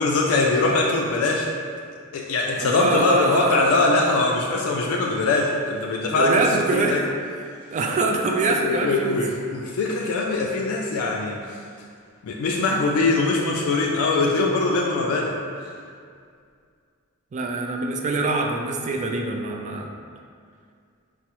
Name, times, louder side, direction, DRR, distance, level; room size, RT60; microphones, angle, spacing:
voice 1, 0.0-1.5 2.1-7.0 8.6-11.4 12.2-15.3, left 3 dB, 70° left, -1 dB, 0.3 m, -22 dB
voice 2, 2.6-4.3 6.1-7.0 7.7-9.2 17.3-20.0, right 3 dB, 35° right, 2 dB, 0.3 m, -24 dB
4.6 x 2.0 x 2.9 m, 2.2 s
head